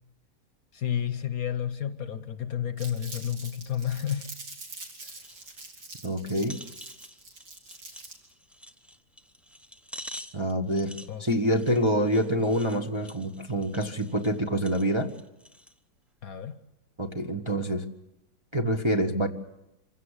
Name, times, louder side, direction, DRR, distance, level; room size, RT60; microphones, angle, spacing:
voice 1, 0.7-4.3 11.1-11.2 16.2-16.6, left 9 dB, 55° left, 11 dB, 1.3 m, -31 dB
Crumpling crinkling, 2.8-8.3, right 3 dB, 90° right, 3.9 m, -44 dB
sound 1, 5.2-5.7 6.0-6.1 6.4-15.8 16.3-16.4, equal, ahead, 0.5 m, -47 dB
voice 2, 6.0-6.6 10.3-15.1 17.0-17.9 18.5-19.3, equal, 20° right, 2 dB, 1.0 m, -26 dB
26.0 x 16.5 x 8.2 m, 0.88 s
omnidirectional pair, 1.9 m